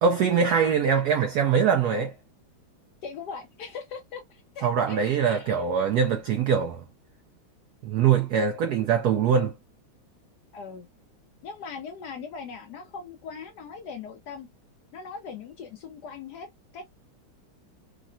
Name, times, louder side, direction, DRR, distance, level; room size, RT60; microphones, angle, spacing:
voice 1, 0.0-2.1 4.6-6.8 7.8-9.5, right 7 dB, 90° right, 0.8 m, -23 dB
voice 2, 3.0-5.7 10.5-10.9 11.4-14.5 14.9-16.8, left 5 dB, 70° left, 1.0 m, -40 dB
3.7 x 2.1 x 2.5 m
omnidirectional pair, 2.2 m